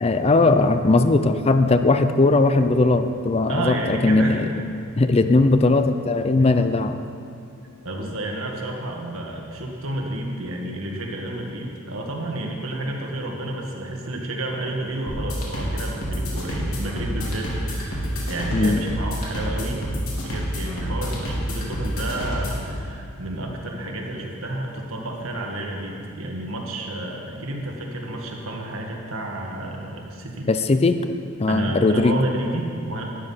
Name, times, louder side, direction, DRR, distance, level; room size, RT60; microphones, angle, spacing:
voice 1, 0.0-4.5 5.0-7.0 18.5-18.8 30.5-31.0 31.4-32.2, left 2 dB, 30° left, 9 dB, 0.5 m, -19 dB
voice 2, 3.5-4.4 7.8-19.8 20.1-30.5 31.5-33.0, right 1 dB, 75° right, 0 dB, 1.9 m, -30 dB
sound 1, 15.1-22.7, equal, 85° left, 3.1 m, -28 dB
12.0 x 10.5 x 5.6 m, 2.5 s
head